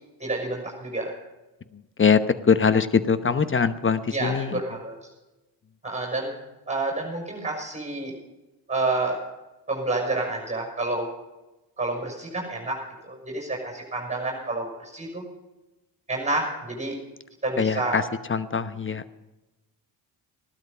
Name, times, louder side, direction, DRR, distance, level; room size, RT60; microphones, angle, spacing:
voice 1, 0.2-1.1 4.1-4.9 5.8-6.3 6.7-8.1 8.7-9.2 9.7-11.1 11.8-12.8 13.0-15.2 16.1-16.9 17.4-18.0, right 2 dB, 15° right, 0 dB, 5.9 m, -29 dB
voice 2, 2.0-4.6 17.6-18.0 18.3-19.0, left 6 dB, 25° left, 13 dB, 1.0 m, -22 dB
16.0 x 12.0 x 5.5 m, 1.1 s
hypercardioid pair, 55°, 49 cm